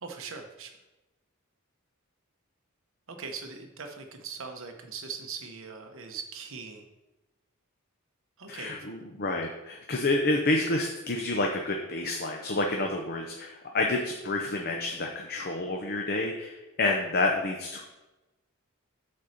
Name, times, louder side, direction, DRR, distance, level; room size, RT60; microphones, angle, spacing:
voice 1, 0.0-0.7 3.1-6.8 8.4-8.9, right 5 dB, 60° right, 4 dB, 1.1 m, -40 dB
voice 2, 8.5-17.8, left 2 dB, 45° left, 2 dB, 0.8 m, -29 dB
8.6 x 4.3 x 6.5 m, 1.0 s
head